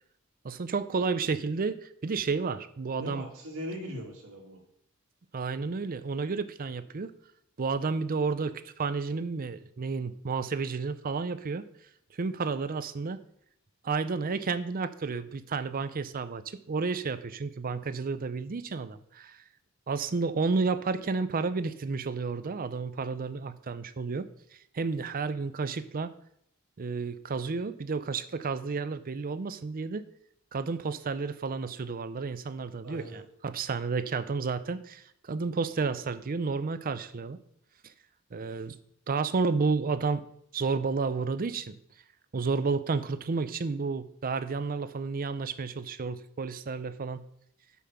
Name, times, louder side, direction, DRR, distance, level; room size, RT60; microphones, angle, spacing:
voice 1, 0.4-3.3 5.3-7.1 7.6-11.7 12.2-13.2 13.8-19.4 19.9-26.1 26.8-30.0 30.5-37.4 37.8-37.9 38.3-38.8 39.1-40.2 40.5-41.8 42.3-47.2, right 4 dB, 40° right, 13 dB, 0.5 m, -31 dB
voice 2, 2.9-4.6 32.8-33.2, equal, 80° right, 0 dB, 2.5 m, -40 dB
8.3 x 5.6 x 5.8 m, 0.69 s
head